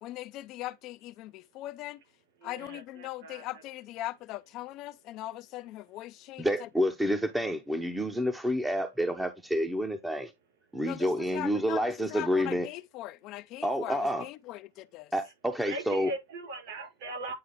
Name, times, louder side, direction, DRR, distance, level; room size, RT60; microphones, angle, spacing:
voice 1, 0.0-2.0 2.4-6.7 10.8-15.1, left 16 dB, 45° left, 0.5 m, -40 dB
voice 2, 2.4-3.4 15.7-17.3, right 2 dB, 60° right, 4.5 m, -39 dB
voice 3, 6.4-10.3 10.7-12.7 13.6-14.2 15.1-16.1, equal, 5° right, 0.8 m, -29 dB
9.5 x 3.2 x 3.5 m
supercardioid pair, 125°, 0 cm